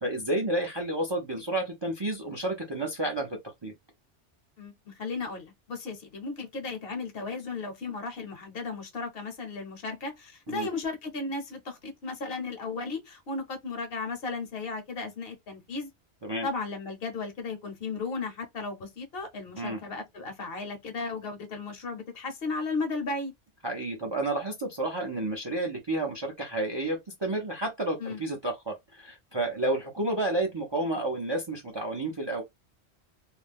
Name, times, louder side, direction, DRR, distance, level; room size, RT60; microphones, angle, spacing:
voice 1, 0.0-3.7 10.5-10.7 16.2-16.5 19.6-19.8 23.6-32.4, right 2 dB, 35° right, 0.4 m, -31 dB
voice 2, 4.6-15.9 16.4-23.3 28.0-28.2, left 3 dB, 60° left, 0.9 m, -35 dB
2.5 x 2.1 x 3.3 m
omnidirectional pair, 1.2 m